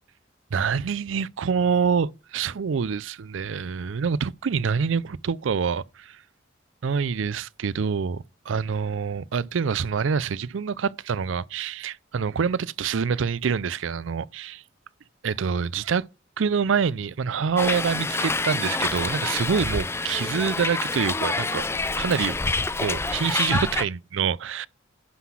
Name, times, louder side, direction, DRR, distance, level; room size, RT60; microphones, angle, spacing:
voice 1, 0.5-6.2 6.8-14.6 15.2-16.0 16.4-21.6 22.0-22.4 22.8-24.7, right 6 dB, 70° right, 0.4 m, -26 dB
Hiss, 17.6-23.8, left 3 dB, 15° left, 0.4 m, -27 dB
11.5 x 3.9 x 6.1 m
head